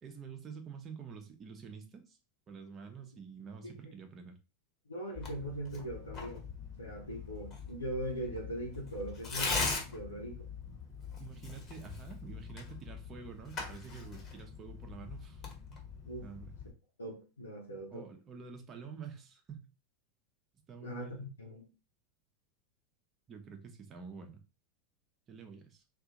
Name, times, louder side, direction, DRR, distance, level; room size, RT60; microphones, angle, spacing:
voice 1, 0.0-2.2 2.5-4.3 11.2-15.4 16.2-16.5 17.9-19.7 20.7-21.3 23.3-24.4 25.3-25.8, right 6 dB, 30° right, 0.9 m, -48 dB
voice 2, 4.9-6.5 6.8-10.5 16.1-16.3 17.0-18.1 20.8-21.6, right 1 dB, 90° left, 0.9 m, -41 dB
Tearing, 5.1-16.7, left 4 dB, 35° left, 1.2 m, -41 dB
2.7 x 2.7 x 3.7 m
hypercardioid pair, 90°, 0 cm